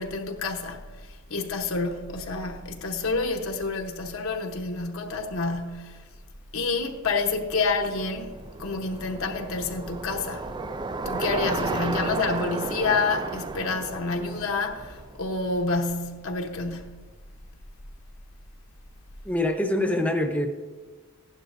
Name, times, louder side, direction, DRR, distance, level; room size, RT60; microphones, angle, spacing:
voice 1, 0.0-6.1 6.5-8.3 8.6-10.5 11.0-16.8, left 3 dB, 75° left, 1.0 m, -28 dB
Bicycle, 7.4-15.7, right 3 dB, 20° right, 0.3 m, -33 dB
voice 2, 19.2-20.5, left 1 dB, 5° left, 0.8 m, -24 dB
15.5 x 11.5 x 2.6 m
head